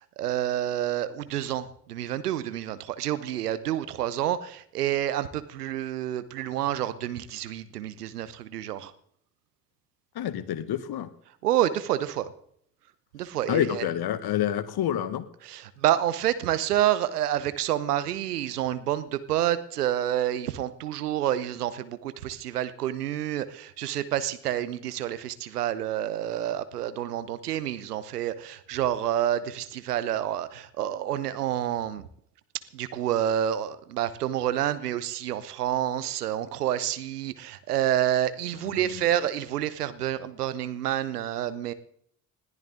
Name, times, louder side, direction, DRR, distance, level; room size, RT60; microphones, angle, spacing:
voice 1, 0.2-8.9 11.4-12.3 13.1-13.9 15.5-32.0 32.7-41.7, right 11 dB, 85° right, 14 dB, 0.9 m, -28 dB
voice 2, 10.1-11.1 13.5-15.2 38.6-39.0, left 11 dB, 55° left, 14 dB, 1.6 m, -28 dB
20.5 x 14.0 x 3.8 m, 0.66 s
figure-of-eight pair, 45°, 45 cm